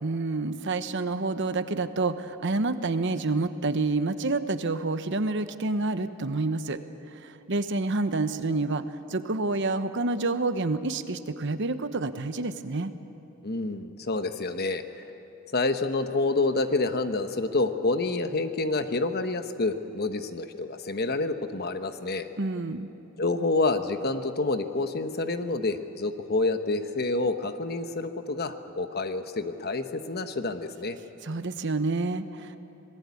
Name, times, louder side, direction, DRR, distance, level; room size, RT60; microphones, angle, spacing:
voice 1, 0.0-6.8 7.1-8.8 9.1-12.9 22.4-22.9 31.2-32.6, right 3 dB, 60° right, 10 dB, 1.0 m, -28 dB
voice 2, 13.4-15.0 15.5-22.3 23.2-31.0, left 3 dB, 50° left, 8 dB, 1.1 m, -28 dB
26.0 x 19.0 x 8.5 m, 2.9 s
head